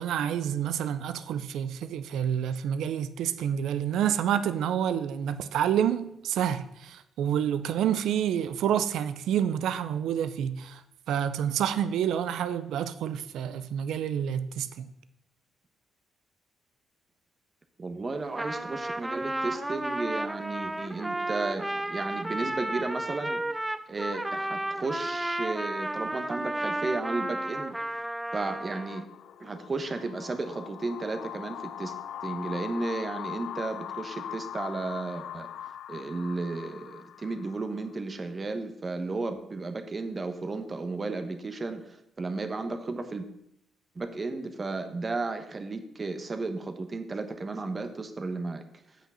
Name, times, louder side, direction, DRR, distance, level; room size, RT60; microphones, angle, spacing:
voice 1, 0.0-10.8 11.1-14.9, right 9 dB, 80° right, 0.6 m, -28 dB
voice 2, 17.8-23.4 23.9-27.8 28.3-29.0 29.4-32.0 32.2-35.5 35.9-43.2 43.9-48.6, right 3 dB, 30° right, 1.1 m, -34 dB
Trumpet, 18.2-29.0, right 1 dB, 10° right, 0.5 m, -33 dB
sound 1, 28.5-38.0, left 10 dB, 70° left, 0.3 m, -41 dB
8.3 x 6.1 x 5.6 m
cardioid pair, 90°, 0 cm